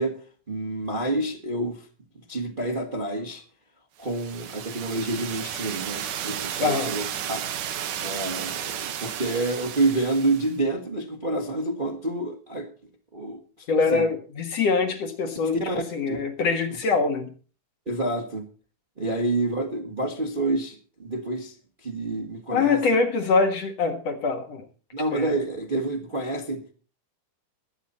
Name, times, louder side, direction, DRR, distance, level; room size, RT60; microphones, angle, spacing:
voice 1, 0.0-1.9 2.3-3.4 4.0-7.4 8.0-12.7 13.1-14.1 15.6-16.2 16.7-16.8 17.8-18.5 19.0-21.6 21.8-22.8 24.9-26.6, right 2 dB, 25° right, 1.1 m, -28 dB
sound 1, 4.0-10.6, right 10 dB, 80° right, 2.8 m, -33 dB
voice 2, 6.6-6.9 13.7-15.6 15.9-17.3 22.5-24.6 25.1-25.3, left 4 dB, 60° left, 2.5 m, -24 dB
21.0 x 8.4 x 4.2 m
omnidirectional pair, 3.6 m